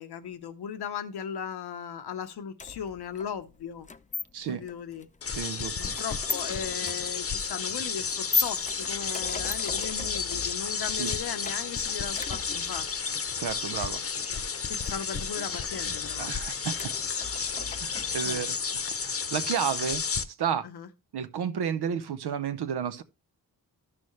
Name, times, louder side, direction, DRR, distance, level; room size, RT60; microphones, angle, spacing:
voice 1, 0.0-3.9 4.5-5.1 5.8-13.2 14.7-16.3 18.2-18.4 20.6-20.9, left 8 dB, 90° left, 1.0 m, -37 dB
sound 1, 2.6-18.3, left 4 dB, 20° left, 0.5 m, -38 dB
voice 2, 4.3-4.6 5.3-6.0 11.0-11.1 13.4-14.0 16.2-16.7 17.2-17.5 17.8-20.0 20.4-20.6 21.1-23.0, right 7 dB, 85° right, 0.9 m, -32 dB
sound 2, 5.2-20.2, left 5 dB, 35° left, 0.8 m, -32 dB
12.5 x 6.1 x 3.2 m
cardioid pair, 85°, 38 cm